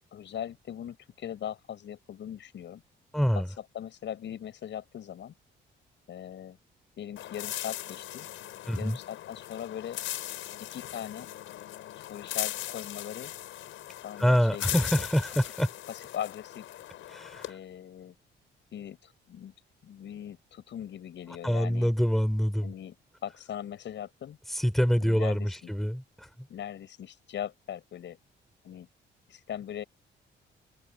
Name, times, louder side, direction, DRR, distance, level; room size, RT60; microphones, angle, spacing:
voice 1, 0.1-2.8 3.7-5.3 6.1-6.6 7.0-8.3 8.8-10.0 10.7-11.3 12.0-13.3 14.0-15.1 15.9-16.7 17.5-18.1 18.7-19.5 19.8-21.9 22.6-23.0 23.2-24.4 25.0-25.7 26.5-28.2 28.6-28.9 29.3-29.8, left 10 dB, 65° left, 7.6 m, -40 dB
voice 2, 3.1-3.5 8.7-9.0 14.2-15.7 17.1-17.5 21.4-22.7 24.5-26.3, equal, ahead, 5.6 m, -26 dB
sound 1, 7.2-17.5, left 13 dB, 85° left, 6.6 m, -39 dB
cardioid pair, 90°, 20 cm